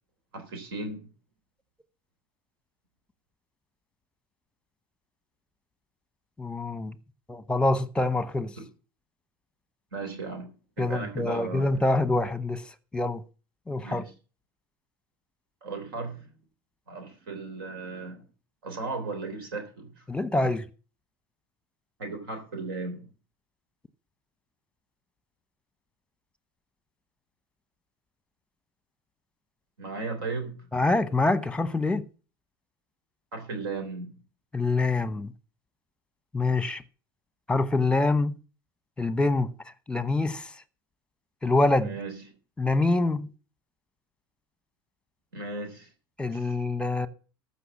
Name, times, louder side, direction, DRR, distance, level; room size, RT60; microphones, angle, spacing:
voice 1, 0.3-1.1 8.6-8.7 9.9-10.5 10.8-11.7 13.8-14.1 15.6-16.3 16.9-18.2 18.6-20.1 20.4-20.5 22.0-23.1 29.8-30.7 33.3-34.2 41.8-42.2 45.3-45.9 46.3-46.6, right 3 dB, 80° right, 3.5 m, -36 dB
voice 2, 6.4-6.9 7.3-8.5 10.8-12.7 12.9-13.2 13.7-14.0 20.1-20.7 30.7-32.0 34.5-35.3 36.3-36.8 37.5-38.3 39.0-39.5 39.9-40.5 41.4-42.0 42.6-43.3 46.2-47.1, left 2 dB, 10° left, 1.0 m, -25 dB
14.0 x 5.8 x 7.2 m
hypercardioid pair, 90°, 12 cm